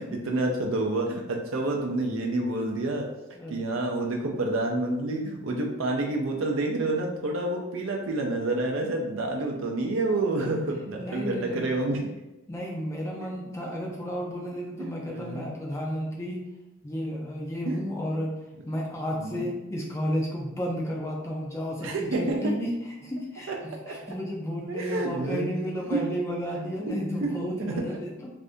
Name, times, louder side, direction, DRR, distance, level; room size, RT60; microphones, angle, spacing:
voice 1, 0.0-3.1 3.5-12.0 14.8-15.5 17.7-17.8 19.1-19.4 21.8-22.5 23.5-23.6 23.9-24.0 24.7-25.5 25.9-26.0 26.9-27.3 27.6-27.7, right 2 dB, 70° right, 1 dB, 0.5 m, -28 dB
voice 2, 11.0-11.7 12.5-16.4 16.8-18.3 18.7-22.7 23.0-28.3, equal, 15° left, -2 dB, 0.4 m, -32 dB
2.6 x 2.5 x 3.4 m, 1.0 s
head